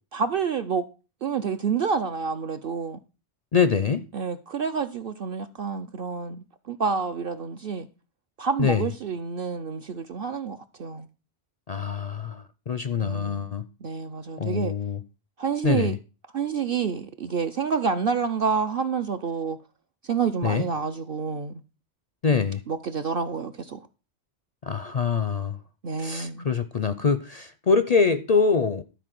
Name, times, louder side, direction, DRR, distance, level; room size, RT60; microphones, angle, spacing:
voice 1, 0.1-0.8 1.2-3.0 4.1-7.9 8.4-11.1 13.0-13.5 13.8-14.7 15.4-16.0 16.3-19.6 20.0-21.6 22.7-23.8 25.8-26.5, right 6 dB, 55° right, 0.8 m, -28 dB
voice 2, 3.5-4.1 8.6-8.9 11.7-13.6 14.4-15.0 15.6-16.0 20.4-20.7 22.2-22.6 24.6-25.6 26.0-28.8, left 5 dB, 45° left, 0.5 m, -24 dB
12.5 x 4.3 x 7.6 m
omnidirectional pair, 1.2 m